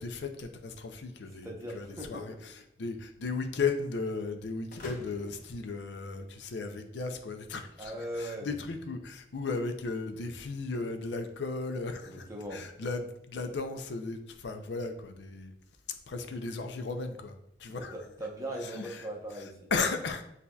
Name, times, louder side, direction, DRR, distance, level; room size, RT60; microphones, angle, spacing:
voice 1, 0.0-2.5 2.8-15.5 16.1-17.9 18.6-19.1 19.7-20.2, left 4 dB, 70° left, 6 dB, 0.5 m, -35 dB
voice 2, 1.4-2.4 7.8-8.5 12.0-12.6 17.7-19.7, right 1 dB, 15° right, -1 dB, 0.7 m, -39 dB
sound 1, 4.7-6.6, left 2 dB, 45° left, 0.8 m, -49 dB
8.1 x 2.7 x 2.2 m, 0.78 s
head